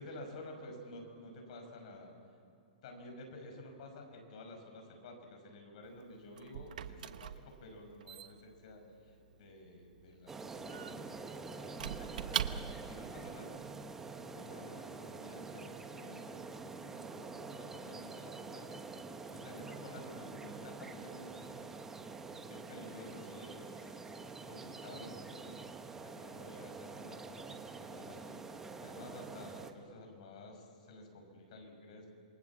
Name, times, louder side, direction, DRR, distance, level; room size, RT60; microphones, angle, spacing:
voice 1, 0.0-2.1 2.8-13.5 14.1-18.8 19.3-21.8 22.4-24.1 24.4-25.6 26.0-32.1, left 1 dB, 50° left, 3 dB, 6.0 m, -52 dB
Squeak / Wood, 5.8-13.0, right 9 dB, 65° right, 1.1 m, -43 dB
sound 1, 10.3-29.7, right 4 dB, 10° right, 1.1 m, -46 dB
27.0 x 22.5 x 7.4 m, 2.6 s
hypercardioid pair, 160°, 5 cm